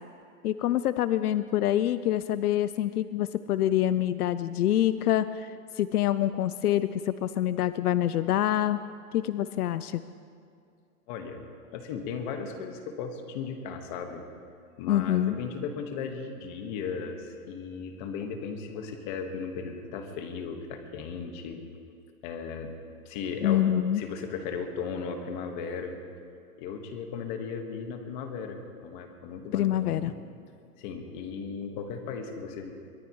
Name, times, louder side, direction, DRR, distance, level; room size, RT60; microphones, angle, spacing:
voice 1, 0.4-8.8 9.1-10.0 14.9-15.3 23.4-24.0 29.5-30.1, left 12 dB, 80° left, 14 dB, 0.7 m, -26 dB
voice 2, 11.1-11.4 11.7-14.3 14.8-22.0 22.2-22.7 23.0-23.6 23.9-26.0 26.6-30.1 30.8-32.7, left 5 dB, 30° left, 5 dB, 1.6 m, -36 dB
23.5 x 19.5 x 3.1 m, 2.4 s
hypercardioid pair, 165°, 45 cm